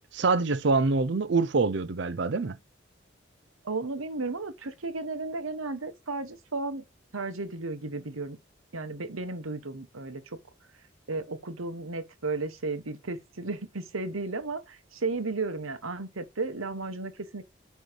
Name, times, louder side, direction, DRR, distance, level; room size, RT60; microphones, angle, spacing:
voice 1, 0.0-2.6, right 3 dB, 60° right, 0.5 m, -25 dB
voice 2, 3.6-6.8 7.1-8.4 8.7-10.4 11.1-17.5, right 3 dB, 85° right, 1.1 m, -34 dB
9.2 x 3.2 x 5.1 m
head